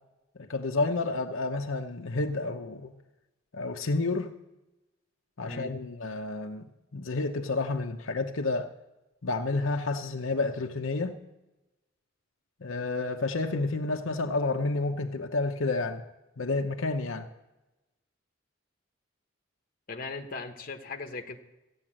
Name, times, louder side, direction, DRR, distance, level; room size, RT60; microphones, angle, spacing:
voice 1, 0.4-2.9 3.5-4.3 5.4-8.7 9.2-11.2 12.6-16.0 16.4-17.3, left 3 dB, 75° left, 0.8 m, -30 dB
voice 2, 5.4-5.8 19.9-21.4, left 3 dB, 40° left, 1.1 m, -38 dB
15.0 x 8.9 x 7.5 m
head